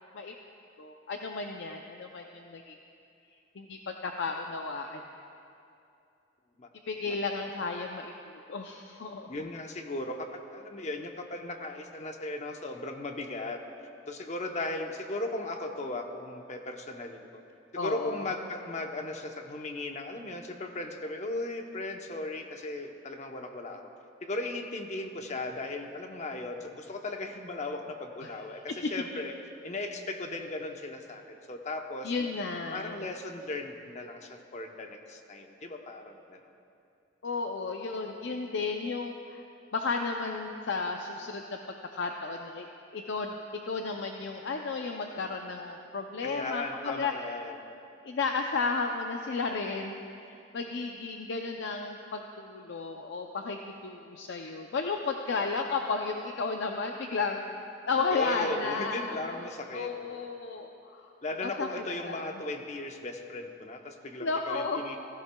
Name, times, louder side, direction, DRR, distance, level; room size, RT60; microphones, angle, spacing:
voice 1, 0.8-2.8 3.6-5.0 6.9-9.3 17.8-18.3 28.2-28.3 32.0-33.0 37.2-39.4 39.7-41.6 41.9-42.7 42.9-43.4 43.6-47.1 48.0-57.6 57.9-59.2 59.7-61.1 61.4-61.7 62.1-62.3 64.2-64.8, left 4 dB, 65° left, 3 dB, 0.5 m, -33 dB
voice 2, 9.3-13.6 14.1-17.3 17.7-23.9 24.2-29.3 29.6-32.3 32.7-36.4 46.2-47.6 58.1-60.3 61.2-65.0, left 2 dB, 40° left, 4 dB, 0.8 m, -37 dB
15.5 x 15.0 x 2.2 m, 2.6 s
head